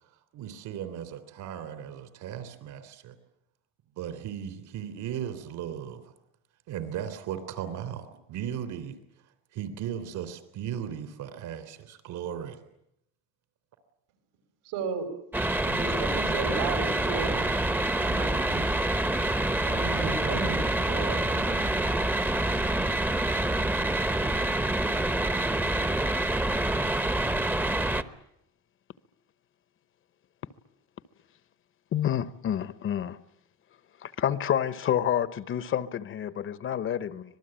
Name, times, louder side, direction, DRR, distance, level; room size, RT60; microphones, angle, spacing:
voice 1, 0.3-3.1 4.0-6.0 6.7-9.0 9.5-12.6, right 9 dB, 65° right, 3.5 m, -36 dB
voice 2, 14.6-15.1 15.7-17.4 18.0-18.9 19.6-22.0, right 5 dB, 85° right, 6.0 m, -35 dB
sound 1, 15.3-28.0, right 1 dB, 5° right, 0.9 m, -27 dB
voice 3, 31.9-33.2 34.2-37.2, left 10 dB, 40° left, 1.0 m, -28 dB
25.5 x 19.5 x 9.0 m
cardioid pair, 145°, 33 cm